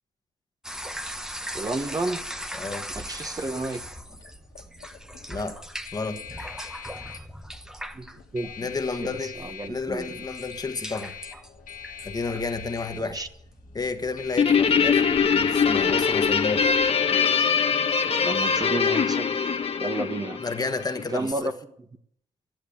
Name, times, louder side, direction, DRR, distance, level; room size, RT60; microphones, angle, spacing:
sound 1, 0.6-16.9, equal, 5° right, 1.0 m, -40 dB
voice 1, 1.5-2.2 2.9-3.8 7.9-8.7 9.0-10.0 12.9-13.3 18.0-19.3 19.8-20.4 21.1-21.5, right 2 dB, 25° right, 1.1 m, -31 dB
voice 2, 2.6-2.9 5.3-5.6 5.9-6.2 8.6-9.3 9.7-11.1 12.0-13.2 13.7-16.8 20.4-21.5, left 4 dB, 30° left, 1.5 m, -31 dB
sound 2, 3.3-20.0, left 9 dB, 75° left, 1.7 m, -44 dB
Guitar, 14.4-21.1, left 6 dB, 45° left, 1.2 m, -22 dB
13.5 x 10.5 x 8.5 m
cardioid pair, 100°, 14 cm